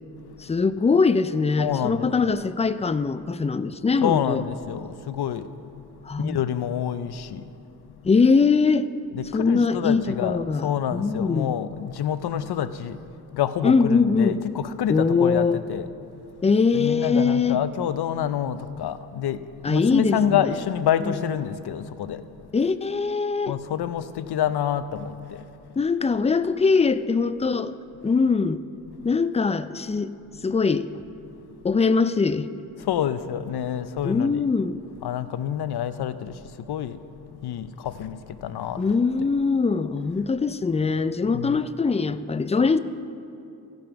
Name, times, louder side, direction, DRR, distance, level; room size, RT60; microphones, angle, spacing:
voice 1, 0.4-4.4 6.1-6.4 8.0-8.9 9.3-11.6 13.6-14.4 14.9-15.6 16.4-17.6 19.6-20.5 21.0-21.1 22.5-23.6 25.8-27.7 28.0-28.6 29.0-30.1 30.4-30.9 31.6-32.5 34.0-34.8 38.8-42.8, left 4 dB, 20° left, 0.3 m, -22 dB
voice 2, 1.6-2.3 4.0-5.9 6.2-7.6 9.1-16.2 16.7-22.5 23.5-25.8 30.3-30.4 31.3-31.4 32.8-34.4 35.0-38.8 41.3-41.6, left 9 dB, 80° left, 0.5 m, -28 dB
15.5 x 5.3 x 5.8 m
cardioid pair, 65°, 38 cm